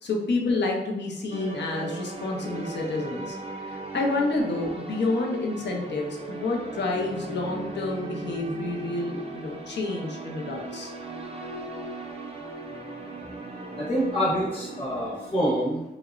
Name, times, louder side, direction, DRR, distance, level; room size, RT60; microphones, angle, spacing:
voice 1, 0.0-3.4 3.7-10.9, left 2 dB, 85° left, 1 dB, 0.5 m, -29 dB
sound 1, 1.3-15.3, right 3 dB, 35° right, 0.5 m, -38 dB
voice 2, 13.8-15.8, equal, 30° left, -8 dB, 0.8 m, -26 dB
2.8 x 2.0 x 2.4 m, 0.94 s
wide cardioid pair, 110°, 18 cm